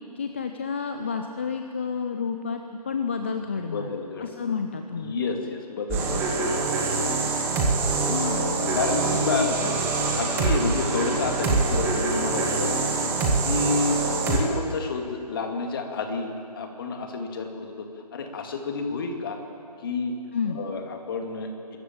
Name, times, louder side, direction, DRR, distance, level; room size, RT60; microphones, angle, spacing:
voice 1, 0.2-5.1 7.6-9.8 20.3-20.6, left 5 dB, 20° left, 6 dB, 0.5 m, -31 dB
voice 2, 3.7-4.5 4.9-6.6 8.7-9.5 10.1-13.1 13.4-14.0 14.3-17.9 18.1-19.4 19.8-20.1 20.5-21.8, left 4 dB, 35° left, 3 dB, 2.3 m, -30 dB
sound 1, 5.9-14.4, right 3 dB, 10° right, 1.7 m, -25 dB
23.5 x 14.0 x 8.8 m, 2.6 s
figure-of-eight pair, 155°, 21 cm